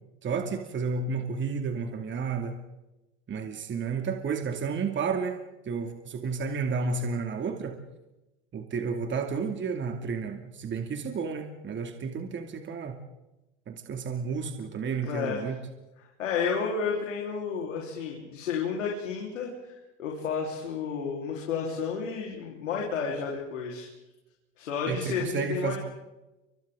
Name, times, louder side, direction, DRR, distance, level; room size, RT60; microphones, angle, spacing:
voice 1, 0.2-2.6 3.3-7.8 8.5-13.0 13.7-15.6 24.9-25.8, right 5 dB, 30° right, 5 dB, 2.5 m, -31 dB
voice 2, 15.0-15.5 16.2-23.9 24.6-25.8, left 6 dB, 90° left, -1 dB, 4.2 m, -31 dB
29.5 x 25.5 x 3.8 m, 1.0 s
hypercardioid pair, 95°, 37 cm